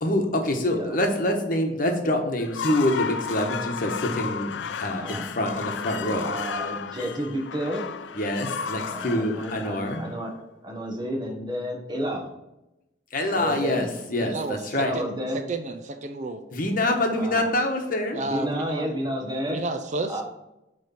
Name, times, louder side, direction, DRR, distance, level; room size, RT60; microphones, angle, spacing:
voice 1, 0.0-6.3 8.1-10.0 13.1-14.9 16.5-18.2, left 1 dB, 50° left, 3 dB, 1.1 m, -26 dB
voice 2, 0.6-1.0 5.0-5.3 5.9-7.9 8.8-10.3 10.6-12.3 13.3-13.9 14.7-15.4 17.1-17.5 18.2-19.6 20.1-20.2, equal, 25° right, 2 dB, 1.2 m, -31 dB
sound 1, 2.4-10.5, left 6 dB, 80° left, 0.4 m, -33 dB
voice 3, 14.2-15.2 15.5-16.4 18.1-18.9 19.5-20.1, right 3 dB, 40° right, 7 dB, 0.5 m, -31 dB
8.6 x 3.2 x 5.4 m, 0.92 s
head